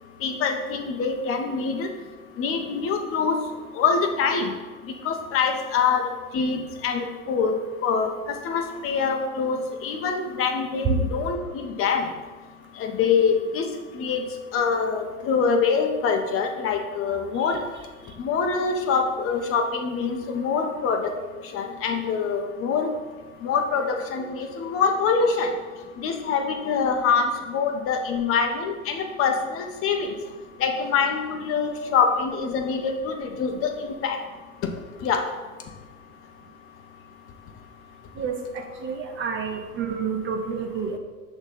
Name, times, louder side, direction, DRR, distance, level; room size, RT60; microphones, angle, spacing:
voice 1, 0.2-1.9 2.4-3.4 3.8-4.5 5.0-7.5 7.8-8.1 8.4-12.1 12.8-13.6 13.9-14.2 14.5-17.6 18.2-21.1 21.5-22.9 23.4-25.5 26.0-30.1 30.6-33.7 34.0-34.2 35.0-35.2, left 5 dB, 35° left, 4 dB, 1.0 m, -24 dB
voice 2, 38.2-41.0, right 6 dB, 30° right, 5 dB, 0.9 m, -29 dB
6.2 x 4.0 x 5.4 m, 1.4 s
figure-of-eight pair, 85°, 41 cm